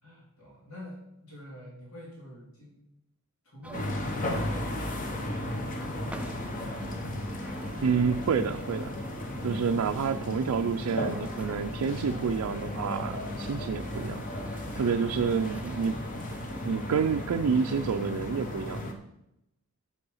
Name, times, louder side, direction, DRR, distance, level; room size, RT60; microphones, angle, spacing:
voice 1, 0.0-2.8 3.4-7.5, equal, 70° left, -5 dB, 3.2 m, -47 dB
sound 1, 3.6-18.1, right 1 dB, 5° right, 0.4 m, -48 dB
sound 2, 3.7-18.9, left 1 dB, 40° left, 1.1 m, -35 dB
voice 2, 7.8-8.9 9.4-14.2 14.8-16.0 16.6-18.8, right 6 dB, 80° right, 6 dB, 0.4 m, -28 dB
7.1 x 6.9 x 5.4 m, 0.84 s
head